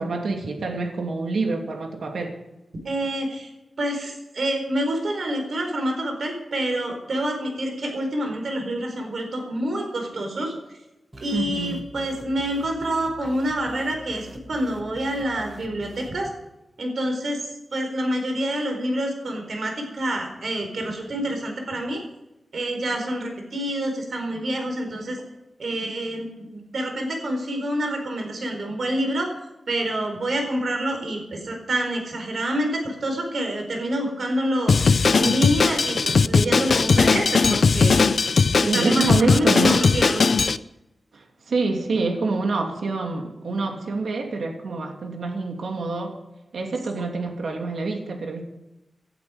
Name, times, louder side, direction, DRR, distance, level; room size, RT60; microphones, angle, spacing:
voice 1, 0.0-2.4 11.3-11.8 38.7-39.8 41.1-46.2 46.5-48.4, right 3 dB, 75° right, 2 dB, 2.7 m, -26 dB
voice 2, 2.8-3.5 3.8-10.8 11.2-16.3 16.8-22.0 22.5-25.2 25.6-29.3 29.7-38.0 38.5-40.3, right 1 dB, 55° right, 3 dB, 4.3 m, -27 dB
sound 1, 11.1-16.3, equal, 10° right, 1.1 m, -45 dB
Drum kit, 34.7-40.6, left 4 dB, 50° left, 0.5 m, -18 dB
18.0 x 11.5 x 5.1 m, 0.95 s
wide cardioid pair, 175°, 0 cm